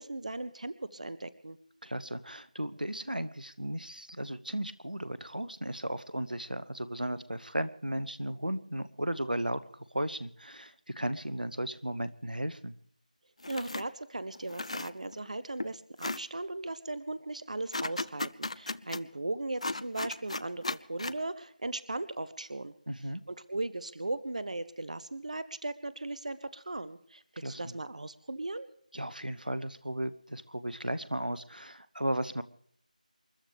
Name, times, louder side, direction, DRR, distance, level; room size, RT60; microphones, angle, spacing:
voice 1, 0.0-1.6 13.5-22.7 23.3-28.7, right 2 dB, 55° right, 15 dB, 0.8 m, -38 dB
voice 2, 1.8-12.7 22.9-23.2 27.4-27.7 28.9-32.4, right 1 dB, 90° right, 14 dB, 0.9 m, -35 dB
sound 1, 13.4-13.9 14.3-15.3 15.6-15.7 16.0-16.2 17.7-19.0 19.6-21.2, left 2 dB, 50° left, 0.5 m, -35 dB
28.0 x 12.5 x 3.4 m, 0.64 s
figure-of-eight pair, 165°, 5 cm